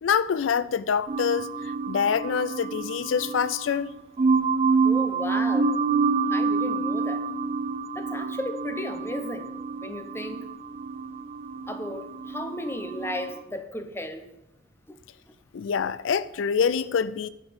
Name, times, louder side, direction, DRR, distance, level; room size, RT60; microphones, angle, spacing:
voice 1, 0.0-3.9 15.5-17.3, left 7 dB, 85° left, 0.4 m, -26 dB
sound 1, 1.1-13.3, right 4 dB, 35° right, 0.5 m, -27 dB
voice 2, 4.8-5.7 6.3-7.2 7.9-10.4 11.7-14.2 14.9-15.0, left 1 dB, 15° left, 0.9 m, -35 dB
10.5 x 5.2 x 8.0 m
head